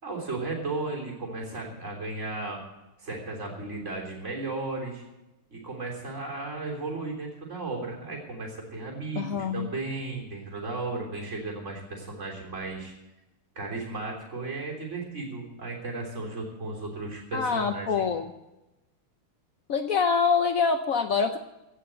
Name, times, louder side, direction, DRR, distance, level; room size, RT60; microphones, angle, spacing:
voice 1, 0.0-2.6 3.0-5.0 5.5-12.9 13.6-18.1, right 3 dB, 35° right, -1 dB, 3.8 m, -35 dB
voice 2, 9.2-9.7 17.3-18.3 19.7-21.4, left 5 dB, 80° left, 7 dB, 0.7 m, -25 dB
16.5 x 6.5 x 9.1 m, 0.97 s
omnidirectional pair, 2.3 m